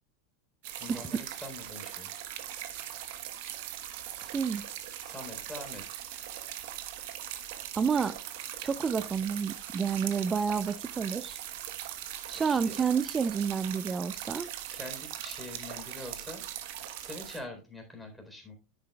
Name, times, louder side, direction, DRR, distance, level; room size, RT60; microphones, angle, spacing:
sound 1, 0.6-17.4, right 11 dB, 65° right, 1.2 m, -40 dB
voice 1, 0.7-2.1 5.0-6.0 12.5-12.8 14.7-16.4 17.0-18.5, left 2 dB, 5° left, 1 dB, 3.8 m, -44 dB
voice 2, 4.2-4.6 7.8-8.2 8.6-11.4 12.3-14.5, right 6 dB, 25° right, 14 dB, 0.4 m, -29 dB
10.5 x 8.6 x 2.3 m, 0.33 s
hypercardioid pair, 90°, 0 cm